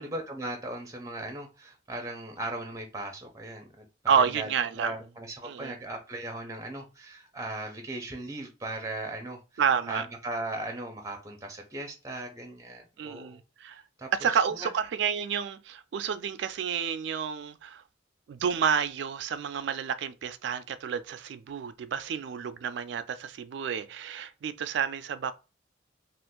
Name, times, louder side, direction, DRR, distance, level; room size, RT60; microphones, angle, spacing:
voice 1, 0.0-4.5 4.8-9.4 9.9-13.4 14.0-14.3 14.6-14.7, right 1 dB, 15° right, 0.6 m, -38 dB
voice 2, 4.1-4.9 5.4-5.7 9.6-10.1 13.0-13.8 14.2-17.8 18.3-25.3, right 7 dB, 65° right, 0.3 m, -30 dB
2.5 x 2.4 x 3.6 m
head